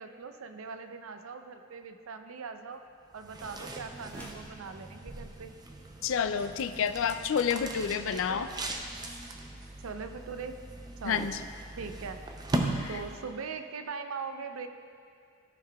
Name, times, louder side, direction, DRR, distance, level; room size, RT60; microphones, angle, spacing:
voice 1, 0.0-2.8 3.1-5.5 8.1-8.4 9.8-10.6 11.0-11.3 11.8-12.2 12.9-14.7, right 5 dB, 90° right, 8 dB, 0.5 m, -41 dB
sound 1, 3.1-13.5, right 2 dB, 20° right, 0.5 m, -39 dB
sound 2, 4.0-4.6, left 1 dB, 10° left, 1.0 m, -49 dB
voice 2, 6.0-8.5 11.0-11.4 12.8-12.9, left 7 dB, 65° left, 10 dB, 0.4 m, -29 dB
14.0 x 6.6 x 2.3 m, 2.4 s
head